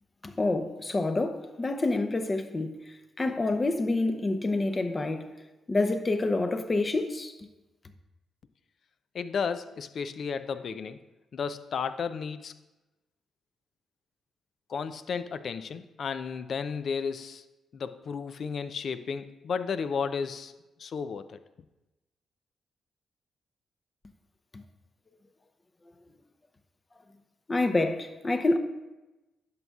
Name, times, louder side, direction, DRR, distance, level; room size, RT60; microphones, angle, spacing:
voice 1, 0.2-5.3 5.7-7.3 24.5-24.6 27.5-28.6, left 2 dB, 35° left, 0.7 m, -27 dB
voice 2, 9.1-11.0 11.3-12.5 14.7-17.4 17.7-20.5 20.8-21.4, left 6 dB, 65° left, 0.4 m, -33 dB
10.5 x 6.2 x 2.4 m
supercardioid pair, 55°, 0 cm